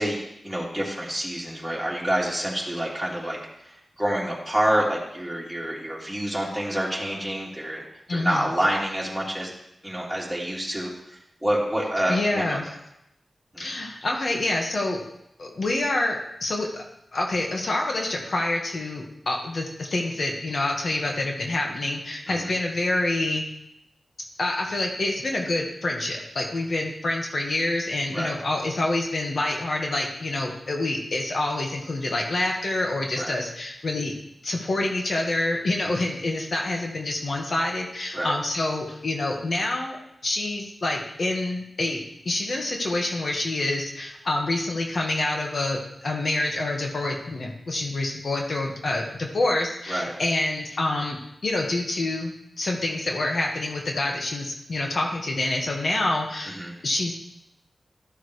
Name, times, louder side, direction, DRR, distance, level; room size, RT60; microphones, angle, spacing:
voice 1, 0.0-7.8 8.1-9.5 9.8-12.7 13.5-13.7 22.3-22.5 28.1-28.3 33.2-33.4 35.8-36.1 38.1-38.3 49.9-50.1 56.5-56.8, right 1 dB, 5° right, -5 dB, 3.4 m, -28 dB
voice 2, 8.1-8.5 12.1-12.6 13.6-15.0 15.4-16.8 17.1-23.4 24.4-34.1 34.4-51.2 51.4-56.6 56.8-57.2, left 2 dB, 65° left, 0 dB, 1.6 m, -27 dB
13.0 x 6.7 x 3.3 m, 0.80 s
cardioid pair, 50°, 0 cm